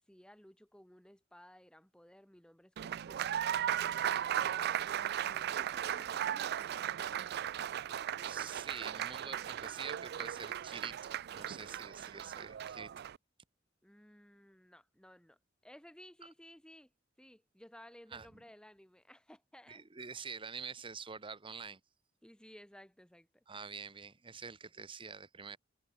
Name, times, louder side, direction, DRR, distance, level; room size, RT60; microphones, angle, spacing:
voice 1, 0.0-7.5 13.8-16.9 17.2-19.9 22.2-23.4, equal, 5° left, 1.6 m, -58 dB
Applause, 2.8-13.2, right 10 dB, 55° right, 0.4 m, -37 dB
voice 2, 8.3-12.9 18.1-18.3 19.7-21.8 23.5-25.6, right 5 dB, 25° right, 1.0 m, -46 dB
head